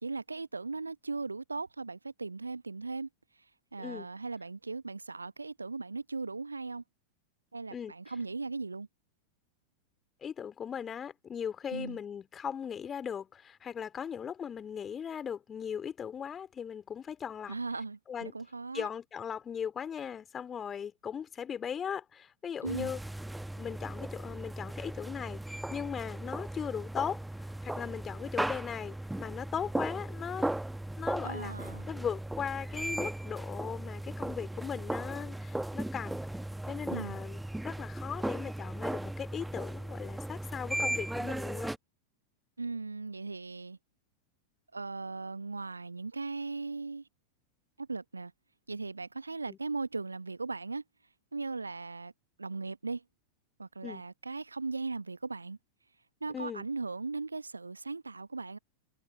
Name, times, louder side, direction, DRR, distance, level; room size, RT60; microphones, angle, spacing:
voice 1, 0.0-3.1 3.7-6.8 7.5-8.9 11.7-12.0 17.5-18.9 22.6-22.9 31.2-31.9 36.9-37.2 42.6-43.8 44.7-47.0 47.8-48.3 48.7-50.8 51.3-52.1 52.4-53.0 53.6-55.6 56.2-58.6, right 3 dB, 80° right, 1.1 m, -38 dB
voice 2, 3.8-4.1 7.7-7.9 10.2-17.5 18.1-18.3 18.7-23.0 23.6-30.5 31.0-31.5 31.9-36.2 36.7-41.7 49.5-49.6 53.8-54.0 56.3-56.7, left 8 dB, 20° left, 3.3 m, -38 dB
sound 1, 22.7-41.8, right 1 dB, 5° right, 1.1 m, -37 dB
figure-of-eight pair, 90°, 0 cm